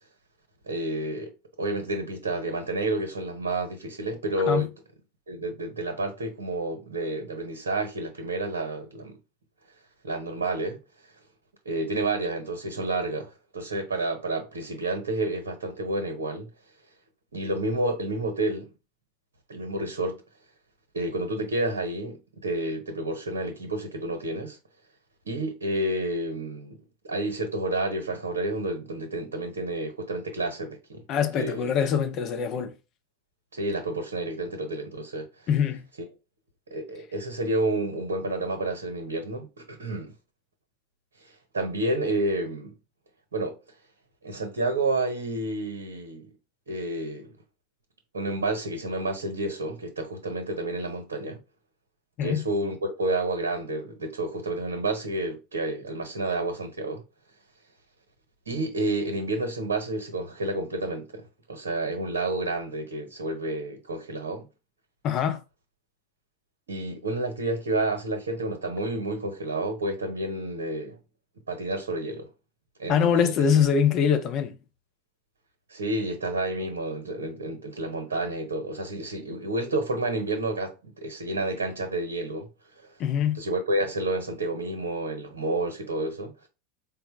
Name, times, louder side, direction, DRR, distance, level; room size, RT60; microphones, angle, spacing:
voice 1, 0.7-1.3 1.6-4.7 5.3-9.2 10.0-10.8 11.6-16.5 17.3-18.7 19.5-20.2 20.9-24.6 25.2-26.8 27.0-31.0 31.3-31.7 33.5-35.3 36.7-40.1 41.2-42.8 43.3-43.6 44.2-46.3 46.7-47.3 48.1-51.4 52.2-57.0 58.5-64.5 66.7-71.0 71.5-72.3 72.8-73.5 75.7-82.5 82.8-82.9 83.4-86.3, right 2 dB, 75° right, 0.9 m, -30 dB
voice 2, 31.1-32.7 35.5-35.8 52.2-52.4 65.0-65.4 72.9-74.5 83.0-83.4, left 7 dB, 45° left, 0.8 m, -23 dB
4.1 x 2.1 x 4.2 m
figure-of-eight pair, 85°, 0 cm